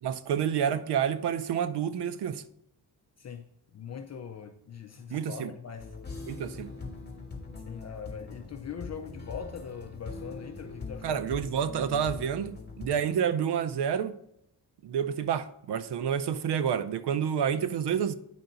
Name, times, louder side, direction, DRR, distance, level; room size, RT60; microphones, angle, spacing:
voice 1, 0.0-2.4 5.1-5.5 6.3-6.7 11.0-14.2 14.8-18.1, right 8 dB, 90° right, 0.7 m, -29 dB
voice 2, 3.7-5.9 7.7-11.2, left 7 dB, 40° left, 0.6 m, -41 dB
sound 1, 5.8-12.9, left 4 dB, 25° left, 1.7 m, -42 dB
9.3 x 5.7 x 3.9 m
cardioid pair, 110°, 39 cm